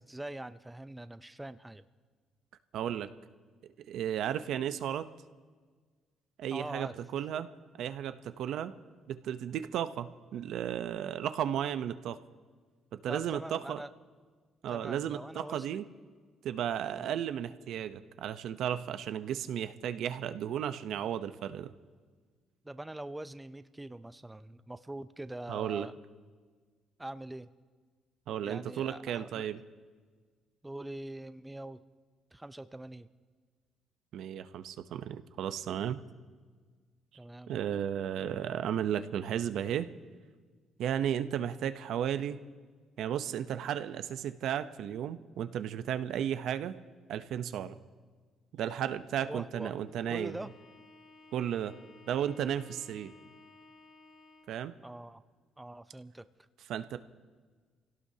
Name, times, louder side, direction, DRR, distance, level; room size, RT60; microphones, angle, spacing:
voice 1, 0.0-1.9 6.5-7.0 13.1-13.9 14.7-15.8 16.9-17.2 22.6-25.9 27.0-27.5 28.4-29.4 30.6-31.8 32.3-33.1 37.1-37.6 49.2-49.7 50.1-50.5 54.8-55.2 55.6-56.3, right 1 dB, 10° right, 12 dB, 0.5 m, -43 dB
voice 2, 2.7-3.1 3.9-5.1 6.4-7.5 7.8-8.7 9.1-12.2 12.9-13.8 14.6-15.8 16.4-21.7 25.5-25.9 28.3-29.6 34.1-36.0 37.5-39.9 40.8-42.4 43.0-46.8 47.1-47.8 48.5-50.4 51.3-51.7 52.1-53.1 54.5-54.7 56.7-57.0, right 10 dB, 70° right, 11 dB, 0.7 m, -34 dB
Bowed string instrument, 49.8-54.7, left 3 dB, 45° left, 1.5 m, -57 dB
28.5 x 17.0 x 2.8 m, 1.5 s
cardioid pair, 125°, 0 cm